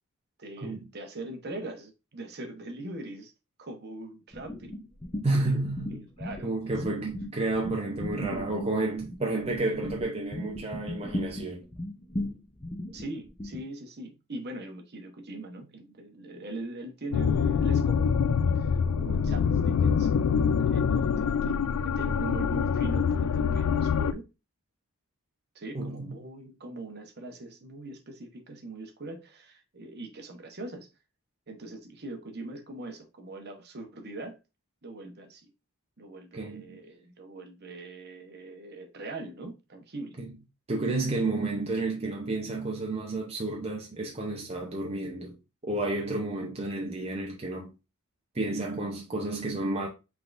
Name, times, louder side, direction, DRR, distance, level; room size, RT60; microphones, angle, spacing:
voice 1, 0.4-3.3 3.6-4.8 5.4-5.5 6.2-6.8 12.9-24.3 25.5-30.9 31.5-34.4 34.8-35.5 36.0-40.2, right 2 dB, 50° right, 1.0 m, -41 dB
sound 1, 4.3-6.4 6.7-13.6, left 1 dB, 20° left, 0.8 m, -37 dB
voice 2, 5.2-6.1 6.4-11.6 25.7-26.2 36.3-36.8 40.2-40.3 40.7-45.4 45.6-47.7 48.3-49.9, right 2 dB, 30° right, 0.7 m, -31 dB
sound 2, 17.1-24.1, left 6 dB, 85° left, 0.3 m, -25 dB
5.6 x 3.6 x 2.6 m
head